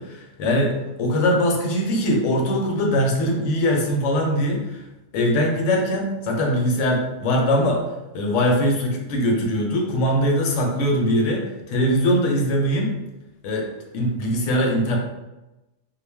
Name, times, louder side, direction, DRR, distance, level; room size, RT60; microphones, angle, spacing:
voice 1, 0.0-4.8 5.1-7.8 8.1-12.9 13.4-13.7 13.9-15.0, equal, 75° left, 0 dB, 0.9 m, -21 dB
2.4 x 2.0 x 3.2 m, 1.0 s
omnidirectional pair, 1.4 m